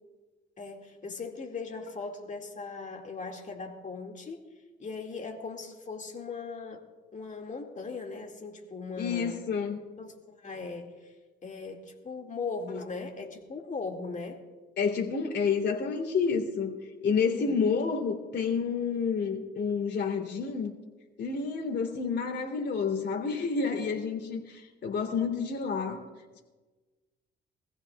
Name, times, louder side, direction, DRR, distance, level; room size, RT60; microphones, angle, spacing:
voice 1, 0.6-4.5 4.8-6.9 7.1-9.5 10.0-11.1 11.4-14.4 17.1-17.6, left 4 dB, 40° left, 2 dB, 2.1 m, -39 dB
voice 2, 9.0-9.8 14.8-16.7 17.0-20.7 21.2-26.0, left 5 dB, 60° left, 0 dB, 3.1 m, -29 dB
24.0 x 15.5 x 2.3 m, 1.3 s
cardioid pair, 90°, 20 cm